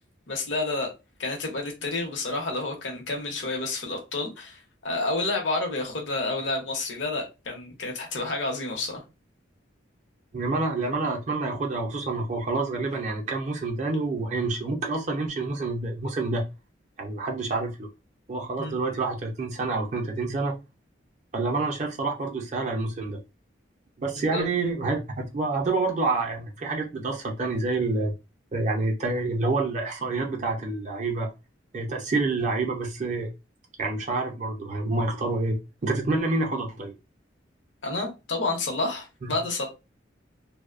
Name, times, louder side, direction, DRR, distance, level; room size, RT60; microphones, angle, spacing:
voice 1, 0.3-0.9 1.2-9.0 18.6-18.8 24.3-24.5 37.8-39.7, left 2 dB, 70° left, 0.7 m, -30 dB
voice 2, 10.3-16.4 17.0-17.9 18.3-20.6 21.3-23.2 24.0-28.1 28.5-31.3 31.7-33.3 33.8-35.6 35.8-36.9 39.2-39.3, right 3 dB, 40° right, 0.4 m, -28 dB
2.5 x 2.0 x 2.3 m
head